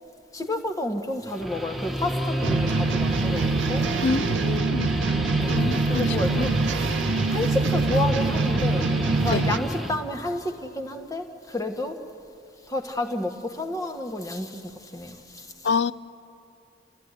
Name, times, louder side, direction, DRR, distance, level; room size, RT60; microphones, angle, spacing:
voice 1, 0.3-4.0 5.4-8.9 9.2-12.0 12.6-15.7, left 1 dB, 20° left, 1.5 m, -31 dB
Guitar, 1.2-9.9, equal, ahead, 1.7 m, -29 dB
sound 1, 2.4-9.6, right 4 dB, 85° right, 0.5 m, -25 dB
voice 2, 4.0-5.2 5.5-6.5 9.3-9.4 15.6-15.9, left 4 dB, 80° left, 0.5 m, -27 dB
29.0 x 14.0 x 9.9 m
head